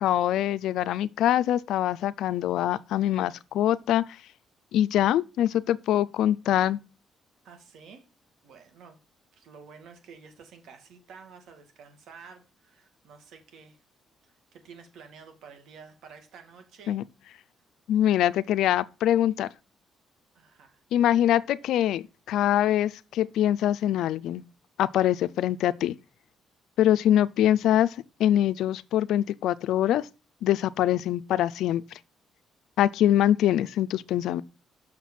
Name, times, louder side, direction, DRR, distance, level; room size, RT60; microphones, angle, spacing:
voice 1, 0.0-4.0 4.7-6.8 16.9-17.0 17.9-19.5 20.9-24.4 24.8-26.0 26.8-27.9 28.2-30.1 30.4-31.8 32.8-34.4, left 11 dB, 85° left, 0.4 m, -24 dB
voice 2, 7.4-8.0 8.4-9.0 9.3-13.8 14.2-17.0 20.3-21.1, right 5 dB, 80° right, 2.3 m, -50 dB
6.4 x 6.0 x 7.2 m
cardioid pair, 90°, 0 cm